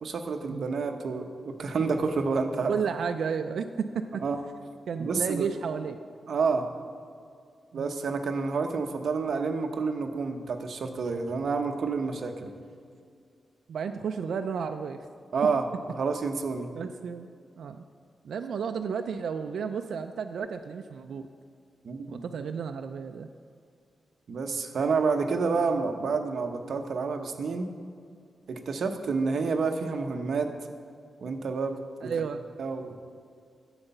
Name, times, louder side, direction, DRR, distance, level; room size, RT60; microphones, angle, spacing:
voice 1, 0.0-2.7 4.2-4.4 5.0-5.5 6.3-6.7 7.7-12.5 15.3-15.7 15.9-16.7 21.8-22.2 24.3-27.7 28.5-30.5 31.2-32.1 32.6-33.0, right 4 dB, 65° right, 5 dB, 0.9 m, -29 dB
voice 2, 2.7-4.2 4.9-6.0 7.7-7.9 13.7-15.1 16.7-17.3 17.6-17.8 18.2-21.3 22.1-23.3 32.0-32.4, right 6 dB, 80° right, 6 dB, 0.4 m, -32 dB
11.0 x 7.9 x 5.5 m, 2.3 s
wide cardioid pair, 145°, 0 cm